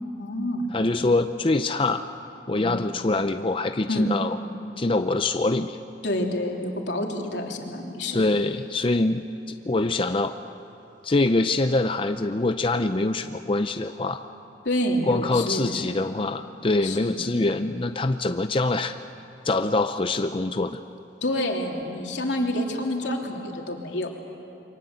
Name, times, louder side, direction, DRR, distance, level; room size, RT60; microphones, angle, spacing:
voice 1, 0.2-0.7 2.6-2.8 3.9-4.1 6.0-8.2 14.6-16.0 16.8-17.3 21.2-24.1, left 1 dB, 85° left, 1 dB, 3.1 m, -28 dB
voice 2, 0.7-2.0 2.5-4.4 4.8-5.8 8.1-10.3 11.0-14.2 15.1-19.0 19.4-20.8, left 2 dB, 30° left, 8 dB, 0.6 m, -24 dB
28.0 x 24.0 x 8.0 m, 2.6 s
head